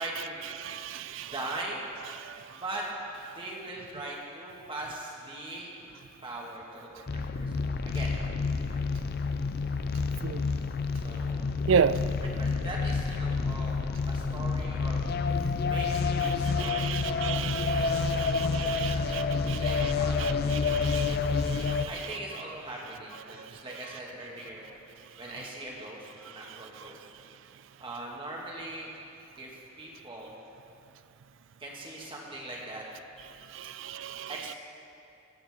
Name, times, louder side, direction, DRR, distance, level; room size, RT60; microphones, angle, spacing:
voice 1, 0.0-0.4 1.2-1.8 2.5-2.8 3.3-5.7 6.2-8.1 11.0-11.5 12.2-13.8 14.1-15.0 15.6-21.1 21.9-24.7 25.2-27.0 27.8-28.9 29.4-30.4 31.6-32.9 34.3-34.5, right 1 dB, 25° right, 1.9 m, -41 dB
voice 2, 0.6-1.3 2.2-2.4 10.2-10.4 11.7-12.0 16.6-19.6 20.6-21.9 33.5-34.3, right 7 dB, 60° right, 0.4 m, -32 dB
sound 1, 7.1-21.9, left 4 dB, 50° left, 0.5 m, -29 dB
21.0 x 8.8 x 3.6 m
head